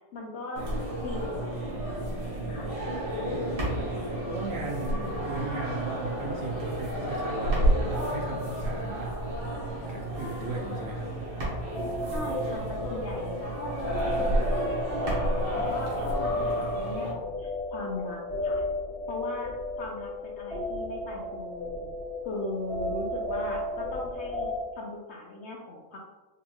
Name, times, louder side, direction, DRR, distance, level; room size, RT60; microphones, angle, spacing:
voice 1, 0.1-0.6 1.0-2.7 12.1-18.6 19.1-19.5 19.8-21.9 22.2-26.0, left 2 dB, 75° left, -1 dB, 0.6 m, -38 dB
sound 1, 0.6-17.1, right 1 dB, 85° right, 1.7 m, -31 dB
voice 2, 3.3-3.9 4.2-9.1 9.9-11.1, right 3 dB, 65° right, -2 dB, 0.6 m, -37 dB
sound 2, 11.7-24.6, left 1 dB, 20° left, 1.4 m, -33 dB
4.9 x 2.8 x 2.3 m, 1.2 s
omnidirectional pair, 1.7 m